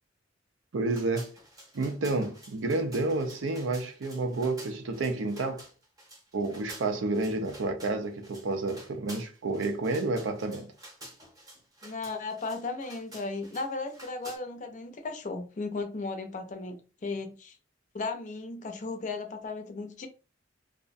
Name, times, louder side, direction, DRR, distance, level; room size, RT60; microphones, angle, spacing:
voice 1, 0.7-1.3 1.7-5.6 6.3-10.7, right 3 dB, 90° right, 0.5 m, -30 dB
sound 1, 0.9-14.4, right 1 dB, 20° right, 0.7 m, -50 dB
voice 2, 11.8-17.6 17.9-20.1, left 3 dB, 40° left, 0.4 m, -36 dB
2.4 x 2.0 x 2.5 m
head